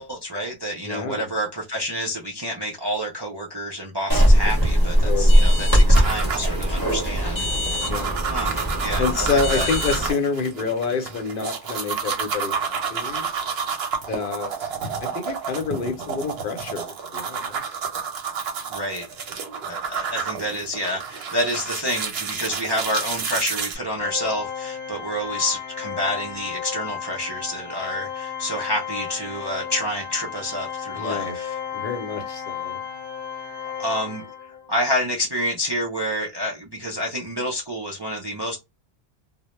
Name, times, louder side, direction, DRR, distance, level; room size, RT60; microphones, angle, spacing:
voice 1, 0.0-7.5 8.2-9.9 18.7-19.1 19.6-31.6 33.8-34.2 34.7-38.6, equal, 40° right, 0.3 m, -28 dB
voice 2, 0.8-1.3 5.0-5.7 7.9-8.2 9.0-13.3 14.1-14.7 15.0-17.7 30.9-31.4 31.7-32.8, left 4 dB, 60° left, 0.7 m, -28 dB
sound 1, 4.1-10.1, equal, 25° left, 0.7 m, -19 dB
sound 2, 5.9-23.7, right 6 dB, 75° right, 0.9 m, -30 dB
Organ, 23.9-34.7, left 8 dB, 90° left, 1.0 m, -33 dB
2.1 x 2.0 x 2.9 m
omnidirectional pair, 1.0 m